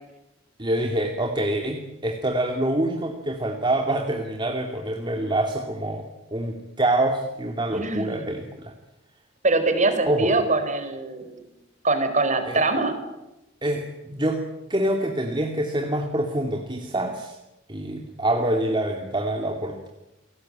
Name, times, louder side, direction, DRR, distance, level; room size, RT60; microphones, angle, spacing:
voice 1, 0.6-6.0 6.3-8.7 10.1-10.3 12.5-12.6 13.6-14.4 14.7-17.4 17.7-19.9, right 1 dB, 25° right, 2 dB, 2.5 m, -26 dB
voice 2, 7.7-8.3 9.4-11.4 11.8-13.0, right 3 dB, 40° right, 8 dB, 4.6 m, -23 dB
29.0 x 19.0 x 8.9 m, 0.95 s
head